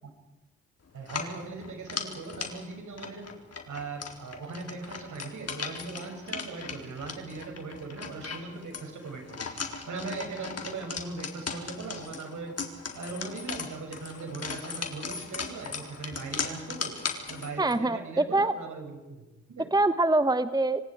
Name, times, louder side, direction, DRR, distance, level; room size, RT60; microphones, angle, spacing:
voice 1, 0.9-3.3 3.7-12.5 12.9-16.9 17.3-19.7, right 3 dB, 65° right, 2 dB, 7.5 m, -39 dB
sound 1, 1.0-17.8, left 5 dB, 50° left, 4.0 m, -38 dB
voice 2, 17.6-18.5 19.7-20.8, right 2 dB, 10° right, 12 dB, 1.2 m, -24 dB
28.0 x 25.0 x 5.0 m, 1.1 s
hypercardioid pair, 40°, 32 cm